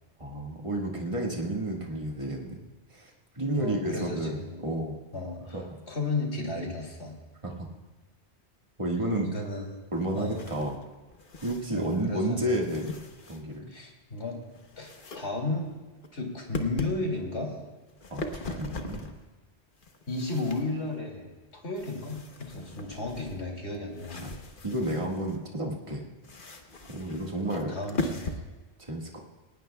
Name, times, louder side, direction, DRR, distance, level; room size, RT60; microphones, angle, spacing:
voice 1, 0.2-2.5 2.9-3.1 3.4-5.0 5.5-5.6 7.4-7.7 8.8-9.3 9.9-10.8 11.4-12.9 13.3-13.7 18.1-19.1 24.2-24.3 24.6-26.0 26.4-26.6 26.9-27.8 28.8-29.2, right 1 dB, 30° right, -1 dB, 1.8 m, -31 dB
voice 2, 3.6-4.6 5.1-5.6 5.9-7.2 9.3-9.7 10.1-10.4 11.7-12.4 13.7-14.4 14.8-15.7 16.1-17.5 20.1-24.4 27.4-28.4, left 2 dB, 75° left, 1 dB, 2.8 m, -34 dB
sound 1, 10.0-12.2 12.5-13.7 14.2-15.2 15.6-16.1 16.5-17.0 17.8-19.2 19.7-21.0 21.7-25.4 26.2-28.4, left 2 dB, 50° left, 1.2 m, -40 dB
19.5 x 18.5 x 2.3 m, 1.2 s
omnidirectional pair, 1.2 m